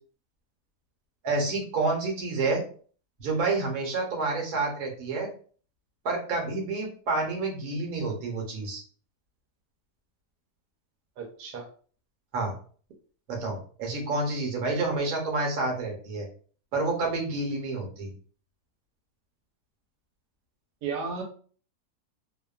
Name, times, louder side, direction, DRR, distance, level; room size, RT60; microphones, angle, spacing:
voice 1, 1.2-2.6 3.2-5.3 6.0-8.8 12.3-12.5 13.3-16.3 16.7-18.1, right 3 dB, 70° right, 1 dB, 1.2 m, -29 dB
voice 2, 11.2-11.7 20.8-21.2, right 5 dB, 90° right, 2 dB, 1.2 m, -33 dB
2.8 x 2.2 x 2.3 m, 0.43 s
omnidirectional pair, 1.7 m